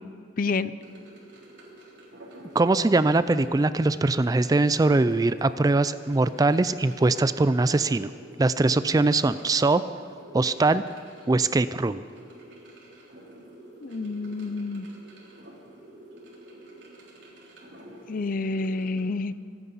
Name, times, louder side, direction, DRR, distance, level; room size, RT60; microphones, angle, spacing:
voice 1, 0.4-0.7 13.8-14.9 18.1-19.3, left 3 dB, 50° left, 15 dB, 0.5 m, -28 dB
sound 1, 0.8-19.1, right 1 dB, 65° right, 3.6 m, -48 dB
voice 2, 2.5-8.1 8.4-9.8 10.3-10.8 11.3-12.0, right 2 dB, 20° right, 14 dB, 0.3 m, -22 dB
25.5 x 9.8 x 5.5 m, 2.3 s
head